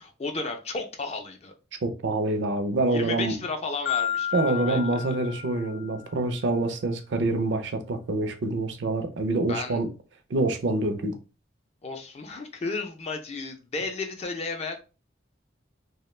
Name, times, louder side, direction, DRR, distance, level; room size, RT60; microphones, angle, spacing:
voice 1, 0.0-1.5 2.9-5.2 9.5-9.8 11.8-14.8, left 3 dB, 35° left, 0.4 m, -33 dB
voice 2, 1.8-3.3 4.3-9.9 10.3-11.1, right 2 dB, 70° right, 0.5 m, -26 dB
Marimba xylophone, 3.9-6.1, left 9 dB, 80° left, 0.6 m, -31 dB
2.3 x 2.1 x 3.1 m
head